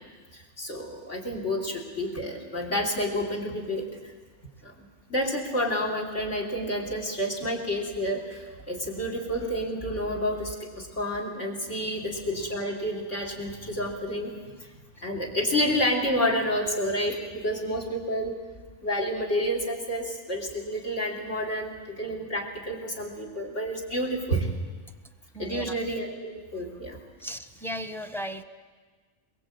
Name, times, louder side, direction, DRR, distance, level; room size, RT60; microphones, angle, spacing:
voice 1, 0.3-3.9 4.6-4.7 5.1-14.3 15.0-18.4 18.8-24.5 25.4-27.0, equal, 60° left, 2 dB, 3.8 m, -29 dB
voice 2, 25.3-25.8 27.2-28.4, equal, ahead, 9 dB, 1.0 m, -36 dB
23.0 x 22.0 x 8.7 m, 1.4 s
omnidirectional pair, 1.4 m